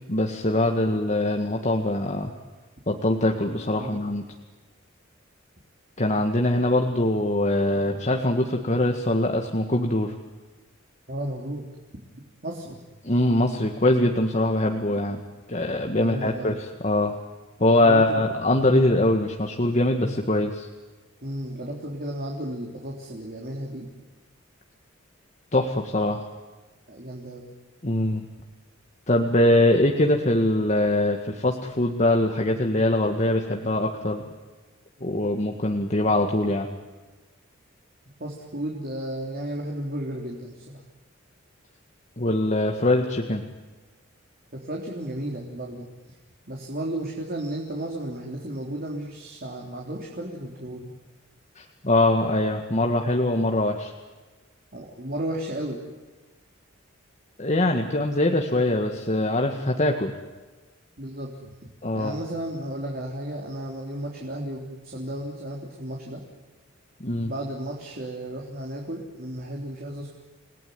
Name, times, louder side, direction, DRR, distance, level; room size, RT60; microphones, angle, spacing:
voice 1, 0.1-2.3 2.9-4.2 6.0-10.2 13.0-15.2 15.5-17.2 17.6-20.7 25.5-26.3 27.8-28.2 29.1-34.2 35.0-36.7 42.2-43.4 51.6-53.9 57.4-60.1 61.8-62.2 67.0-67.3, left 1 dB, 35° left, 2 dB, 1.9 m, -23 dB
voice 2, 11.1-11.7 12.4-12.8 16.0-16.6 17.7-18.2 21.2-23.9 26.9-27.5 38.2-40.8 44.5-45.9 46.5-50.9 54.7-55.8 61.0-61.5 61.9-66.2 67.3-70.1, right 1 dB, 45° right, -1 dB, 3.7 m, -33 dB
30.0 x 19.5 x 9.5 m, 1.3 s
head